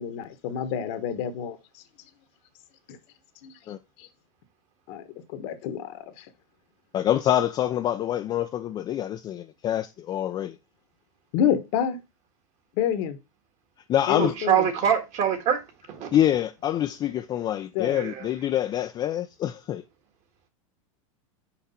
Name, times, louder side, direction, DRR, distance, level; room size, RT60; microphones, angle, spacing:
voice 1, 0.0-1.6 2.9-3.0 3.4-3.5 4.0-4.1 4.9-5.0 5.3-6.3 11.3-12.0 12.8-13.2 14.1-14.7 17.7-18.0, left 9 dB, 55° left, 1.1 m, -28 dB
voice 2, 6.9-10.6 13.9-14.3 16.1-19.8, left 11 dB, 25° left, 0.4 m, -26 dB
voice 3, 14.2-15.6 15.9-16.2 17.9-18.3, right 9 dB, 40° right, 1.5 m, -24 dB
5.9 x 4.7 x 4.1 m
supercardioid pair, 130°, 18 cm